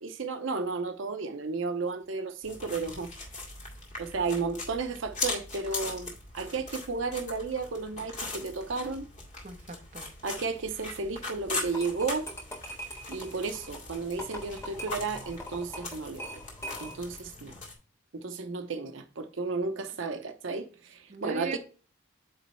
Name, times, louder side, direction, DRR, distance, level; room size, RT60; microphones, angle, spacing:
voice 1, 0.0-3.1 4.0-9.1 10.2-12.3 13.1-16.4 16.8-17.5 18.1-21.6, right 4 dB, 75° right, 0.7 m, -33 dB
sound 1, 2.4-17.7, left 3 dB, 35° left, 1.9 m, -40 dB
voice 2, 9.4-10.1 17.5-17.6 18.6-18.7 21.1-21.6, right 3 dB, 35° right, 0.9 m, -39 dB
sound 2, 11.6-17.2, equal, 15° left, 1.4 m, -42 dB
8.4 x 3.1 x 4.3 m
head